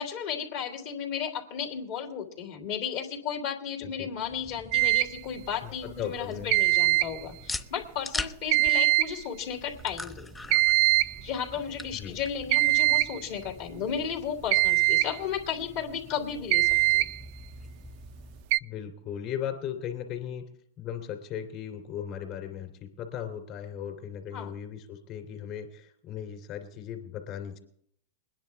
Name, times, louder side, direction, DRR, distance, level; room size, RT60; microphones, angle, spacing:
voice 1, 0.0-10.3 11.2-17.0 24.3-24.6, left 7 dB, 60° left, 0 dB, 2.9 m, -34 dB
sound 1, 4.1-18.4, left 2 dB, 10° left, 0.9 m, -43 dB
sound 2, 4.7-5.2 6.5-7.2 8.5-9.2 10.5-11.2 12.5-13.2 14.5-15.2 16.5-17.2 18.5-18.6, right 20 dB, 60° right, 0.4 m, -22 dB
voice 2, 5.6-6.5 11.9-12.2 18.6-20.4 20.8-27.6, left 9 dB, 45° left, 5 dB, 3.2 m, -37 dB
22.0 x 10.5 x 3.5 m, 0.68 s
hypercardioid pair, 115°, 0 cm